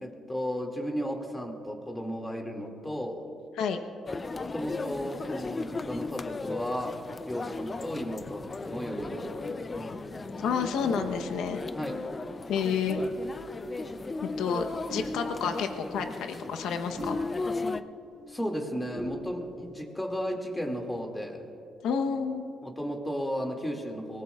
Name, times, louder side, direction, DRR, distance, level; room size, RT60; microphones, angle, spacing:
voice 1, 0.0-3.3 4.4-7.0 7.3-9.9 11.7-12.0 18.3-21.4 22.6-24.2, equal, 10° left, 2 dB, 2.3 m, -34 dB
sound 1, 4.1-17.8, left 3 dB, 30° left, 0.5 m, -36 dB
sound 2, 8.9-18.7 19.0-19.8, right 1 dB, 30° right, 3.1 m, -42 dB
voice 2, 10.4-11.6 12.5-13.0 14.4-17.2 21.8-22.5, left 6 dB, 85° left, 5 dB, 0.9 m, -30 dB
23.5 x 19.5 x 2.4 m, 2.8 s
cardioid pair, 90°, 0 cm